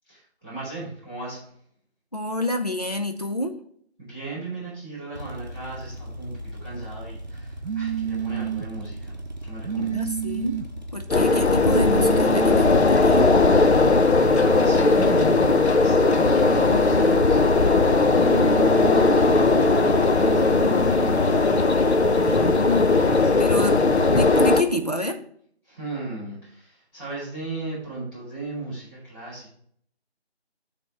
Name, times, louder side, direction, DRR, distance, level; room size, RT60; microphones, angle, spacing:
voice 1, 0.0-1.5 4.0-10.1 13.6-21.4 25.6-29.5, right 3 dB, 20° left, -15 dB, 3.3 m, -37 dB
voice 2, 2.1-3.5 9.8-10.6 10.9-13.3 22.2-25.2, left 1 dB, 35° left, 5 dB, 0.5 m, -28 dB
sound 1, 5.1-22.9, equal, 40° right, 0.8 m, -37 dB
sound 2, 7.6-8.7 9.6-10.7 11.6-12.7 14.2-15.2 16.2-17.2 18.2-19.2 20.2-21.2, right 10 dB, 85° right, 0.5 m, -31 dB
sound 3, 11.1-24.6, left 3 dB, 75° left, 0.7 m, -18 dB
6.7 x 3.5 x 6.0 m, 0.64 s
figure-of-eight pair, 170°, 33 cm